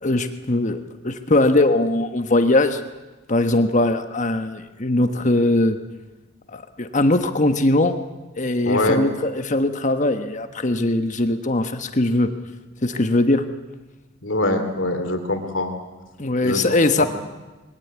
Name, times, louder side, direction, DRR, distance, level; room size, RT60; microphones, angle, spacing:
voice 1, 0.0-2.8 3.3-5.8 6.5-8.0 8.4-12.3 12.8-13.4 16.2-17.1, left 2 dB, 40° left, 8 dB, 1.3 m, -20 dB
voice 2, 8.7-9.0 14.2-15.7 16.4-16.6 17.0-17.1, left 2 dB, 70° left, 6 dB, 3.0 m, -23 dB
22.5 x 17.0 x 9.4 m, 1.2 s
head